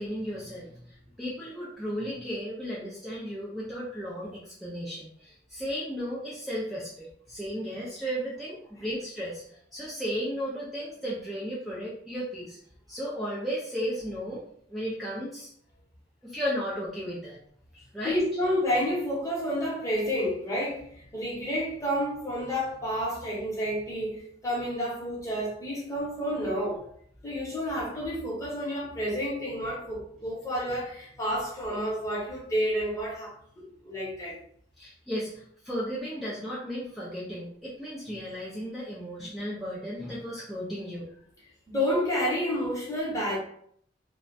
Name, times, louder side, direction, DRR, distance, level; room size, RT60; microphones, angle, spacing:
voice 1, 0.0-12.6 12.9-14.4 14.7-15.5 16.2-17.4 17.7-18.2 34.8-41.1, equal, ahead, 0.4 m, -35 dB
voice 2, 18.0-26.8 27.2-34.4 41.7-43.4, equal, 15° left, 0.8 m, -30 dB
2.3 x 2.1 x 2.5 m
head